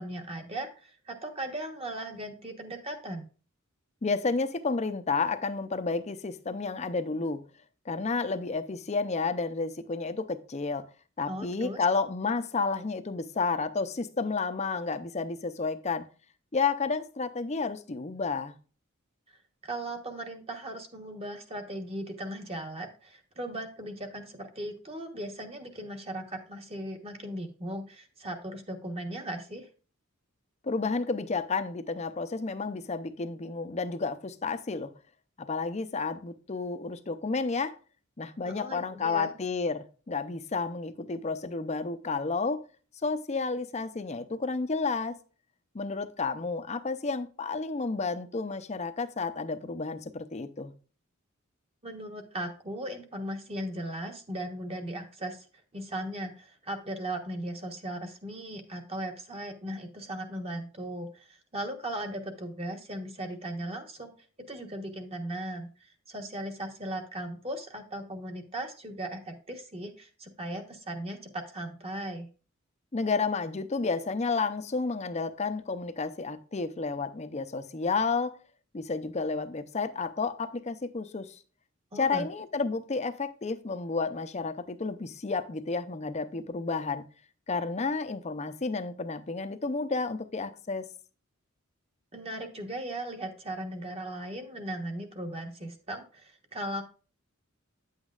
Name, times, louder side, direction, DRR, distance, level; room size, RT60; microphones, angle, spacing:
voice 1, 0.0-3.3 11.3-11.8 19.3-19.4 19.6-29.7 38.4-39.3 51.8-55.5 55.7-64.1 64.5-72.3 81.9-82.3 92.1-96.8, right 1 dB, 30° right, 1.2 m, -38 dB
voice 2, 4.0-7.4 7.9-10.8 11.2-16.1 16.5-18.5 30.6-34.9 35.4-37.8 38.2-42.6 43.0-45.2 45.7-50.7 72.9-78.4 78.7-81.4 82.0-87.0 87.5-90.9, left 4 dB, 35° left, 0.6 m, -31 dB
9.3 x 8.1 x 2.4 m
head